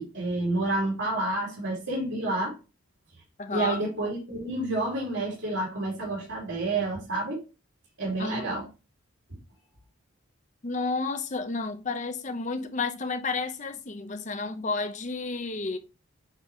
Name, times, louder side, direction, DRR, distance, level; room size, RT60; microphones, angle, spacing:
voice 1, 0.0-2.5 3.5-7.4 8.0-8.6, right 2 dB, 70° right, 2.6 m, -29 dB
voice 2, 3.4-3.8 8.2-8.6 10.6-15.8, left 3 dB, 35° left, 0.7 m, -31 dB
8.1 x 4.0 x 3.1 m
head